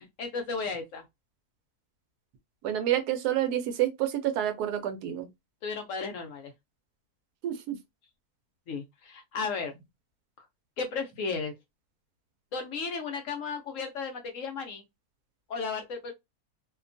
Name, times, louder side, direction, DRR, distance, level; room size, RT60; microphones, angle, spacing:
voice 1, 0.2-1.0 5.6-6.5 8.7-9.7 10.8-11.5 12.5-14.8 15.5-16.1, left 4 dB, 65° left, 0.8 m, -34 dB
voice 2, 2.6-5.3 7.4-7.8, right 11 dB, 80° right, 1.1 m, -28 dB
2.8 x 2.2 x 2.5 m
omnidirectional pair, 1.7 m